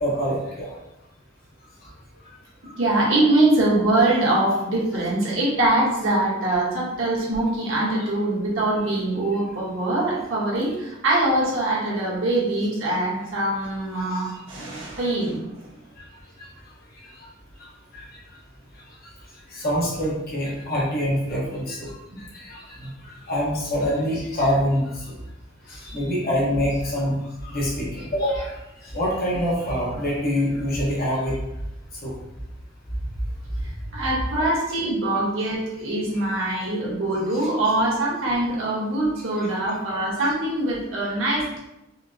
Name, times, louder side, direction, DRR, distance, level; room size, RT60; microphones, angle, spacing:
voice 1, 0.0-0.7 2.6-2.7 16.4-16.5 17.2-17.3 17.9-18.1 19.5-21.9 22.3-22.9 23.3-25.1 25.7-27.2 27.4-28.5 28.8-31.4 32.0-32.1 39.3-39.5, equal, 50° left, -5 dB, 1.0 m, -25 dB
voice 2, 2.8-15.4 33.9-41.6, right 2 dB, 80° right, -5 dB, 1.1 m, -23 dB
4.2 x 2.0 x 2.6 m, 0.91 s
head